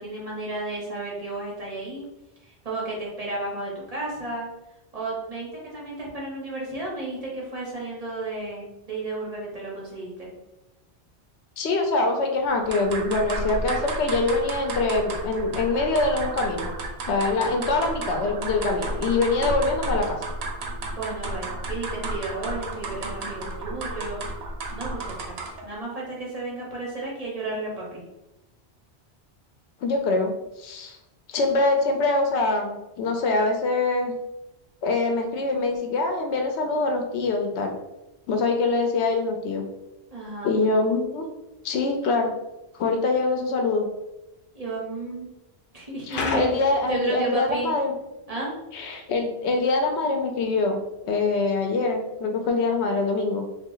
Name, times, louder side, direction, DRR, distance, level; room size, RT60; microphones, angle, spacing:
voice 1, 0.0-2.0 2.5-4.5 4.9-10.3 20.8-24.2 24.7-28.0 40.1-40.6 44.5-45.3 45.7-47.7 48.3-48.6, right 2 dB, 35° right, -4 dB, 1.0 m, -33 dB
voice 2, 11.6-16.7 17.1-20.2 29.8-31.0 31.3-34.1 34.8-37.7 38.3-39.6 40.4-41.3 41.6-42.3 42.7-43.9 46.1-47.9 48.7-50.8 51.0-53.4, left 3 dB, 85° left, 4 dB, 0.9 m, -24 dB
sound 1, 12.5-25.7, right 2 dB, 70° right, 0.9 m, -32 dB
sound 2, 46.1-47.7, left 3 dB, 60° left, 0.7 m, -31 dB
3.0 x 2.4 x 3.8 m, 0.95 s
omnidirectional pair, 1.1 m